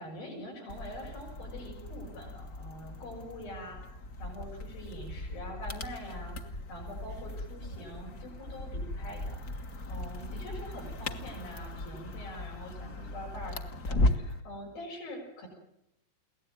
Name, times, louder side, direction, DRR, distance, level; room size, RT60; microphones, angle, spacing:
voice 1, 0.0-3.8 4.2-15.5, equal, 85° left, 1 dB, 7.9 m, -44 dB
sound 1, 0.7-14.4, left 1 dB, 45° left, 1.2 m, -37 dB
23.0 x 17.5 x 9.2 m, 0.80 s
omnidirectional pair, 4.1 m